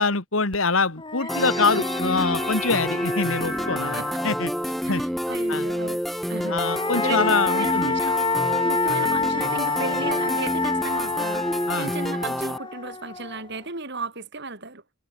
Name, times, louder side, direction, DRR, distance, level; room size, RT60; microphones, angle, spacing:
voice 1, 0.0-5.0 5.5-5.7 6.5-7.9 11.7-11.9, left 4 dB, 75° left, 2.5 m, -25 dB
sound 1, 0.5-0.6 1.0-4.7 6.3-13.6, left 4 dB, 25° left, 3.9 m, -28 dB
sound 2, 1.3-12.6, equal, ahead, 6.7 m, -28 dB
voice 2, 4.8-6.0 6.3-6.6 6.9-8.1 8.6-14.8, right 3 dB, 55° right, 5.1 m, -35 dB
head